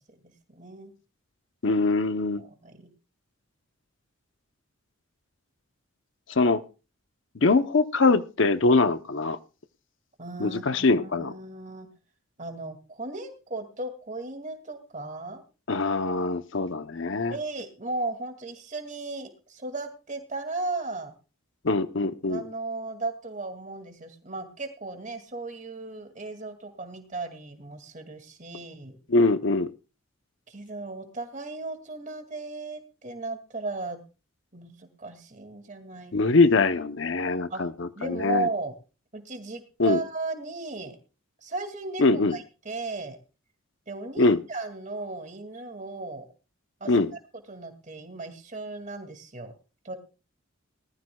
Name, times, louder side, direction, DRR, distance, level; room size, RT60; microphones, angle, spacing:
voice 1, 0.1-0.9 2.4-2.9 10.2-11.9 12.4-15.4 17.3-21.1 22.3-29.0 30.5-34.0 34.5-36.2 37.5-37.6 38.0-38.7 39.1-41.0 41.4-43.2 43.9-46.3 46.8-47.0 47.5-49.5 49.8-50.0, right 2 dB, 35° right, 7 dB, 2.3 m, -36 dB
voice 2, 1.6-2.4 6.4-6.6 7.3-9.4 10.4-11.3 15.7-17.3 21.6-22.4 29.1-29.7 36.1-38.5 39.8-40.0 42.0-42.4 44.2-44.4 46.9-47.1, left 3 dB, 60° left, 12 dB, 0.8 m, -23 dB
20.0 x 14.0 x 2.3 m, 0.32 s
head